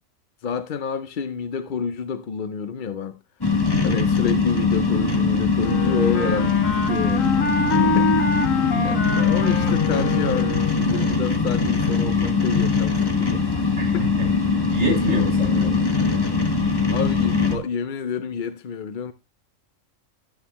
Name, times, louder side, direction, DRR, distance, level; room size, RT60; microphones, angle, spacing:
voice 1, 0.4-3.2 3.8-6.6 6.8-7.5 8.0-8.5 8.8-14.1 16.8-19.1, left 6 dB, 55° left, 0.6 m, -29 dB
sound 1, 3.4-17.6, left 4 dB, 20° left, 1.4 m, -21 dB
Wind instrument woodwind instrument, 5.6-11.0, left 3 dB, 75° left, 1.5 m, -25 dB
voice 2, 7.7-8.0 8.7-8.8 13.8-14.3 14.7-15.9, left 2 dB, 70° right, 6.6 m, -27 dB
11.0 x 9.0 x 3.0 m
omnidirectional pair, 1.4 m